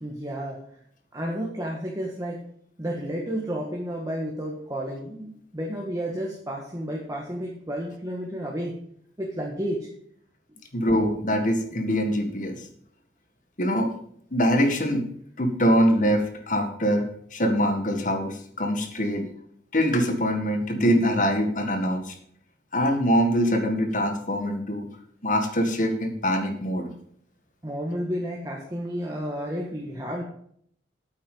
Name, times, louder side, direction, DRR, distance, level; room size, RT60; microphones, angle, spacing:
voice 1, 0.0-0.6 1.1-2.4 2.8-8.8 9.2-9.9 27.6-30.2, equal, 20° right, -1 dB, 1.6 m, -31 dB
voice 2, 10.7-12.6 13.6-13.9 14.3-15.1 15.4-17.0 17.3-19.3 19.7-22.1 22.7-24.9 25.2-26.9, equal, 45° left, 5 dB, 1.8 m, -23 dB
8.9 x 8.4 x 5.5 m, 0.65 s
head